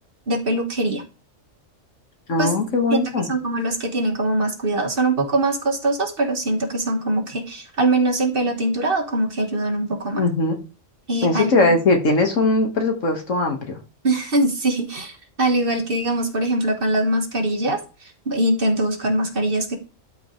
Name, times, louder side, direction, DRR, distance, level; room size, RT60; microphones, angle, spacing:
voice 1, 0.3-1.0 2.4-2.5 2.9-3.0 3.3-10.2 11.1-11.8 14.0-19.8, right 2 dB, 45° right, 4 dB, 1.6 m, -22 dB
voice 2, 2.3-3.3 10.2-10.6 11.2-13.8, left 2 dB, 75° left, 3 dB, 2.0 m, -20 dB
12.5 x 5.2 x 3.2 m, 0.31 s
omnidirectional pair, 1.3 m